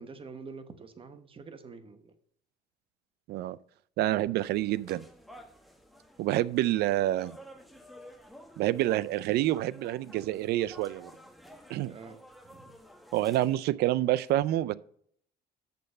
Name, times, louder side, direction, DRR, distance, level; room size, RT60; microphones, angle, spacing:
voice 1, 0.0-2.1 11.9-12.2 12.4-12.7, right 4 dB, 30° right, 10 dB, 1.0 m, -46 dB
voice 2, 4.0-5.0 6.2-7.4 8.6-11.1 11.7-11.9 13.1-14.7, right 14 dB, 70° right, 20 dB, 0.4 m, -27 dB
sound 1, 4.4-13.6, equal, ahead, 1.1 m, -52 dB
6.8 x 6.4 x 5.5 m, 0.63 s
cardioid pair, 110°, 17 cm